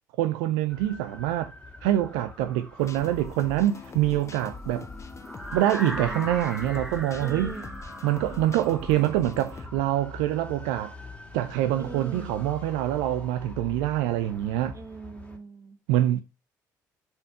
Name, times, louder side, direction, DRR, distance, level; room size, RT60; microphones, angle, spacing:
voice 1, 0.2-1.5 1.8-4.9 5.5-7.6 8.0-10.9 11.3-14.8 15.9-16.2, right 13 dB, 70° right, 0.5 m, -25 dB
sound 1, 0.7-15.4, left 3 dB, 10° left, 2.1 m, -45 dB
sound 2, 2.8-9.7, left 4 dB, 30° left, 1.3 m, -43 dB
sound 3, 5.2-11.2, equal, 5° right, 1.5 m, -39 dB
voice 2, 5.8-6.3 7.2-7.8 11.8-12.3 14.7-15.8, right 4 dB, 35° right, 1.5 m, -41 dB
7.0 x 4.5 x 6.7 m
figure-of-eight pair, 45°, 9 cm